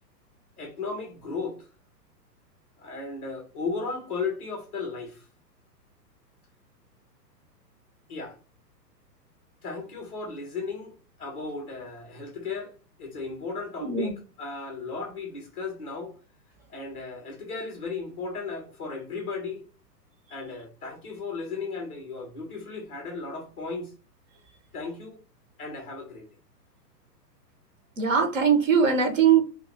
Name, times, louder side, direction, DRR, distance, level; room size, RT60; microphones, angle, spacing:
voice 1, 0.6-1.6 2.8-5.2 8.1-8.4 9.6-12.7 13.0-16.1 16.7-19.6 20.3-23.9 24.7-25.2 25.6-26.3, left 4 dB, 5° left, 0.4 m, -35 dB
voice 2, 13.8-14.1 28.0-29.4, right 7 dB, 50° right, 1.0 m, -21 dB
2.9 x 2.4 x 4.1 m
figure-of-eight pair, 115°, 50 cm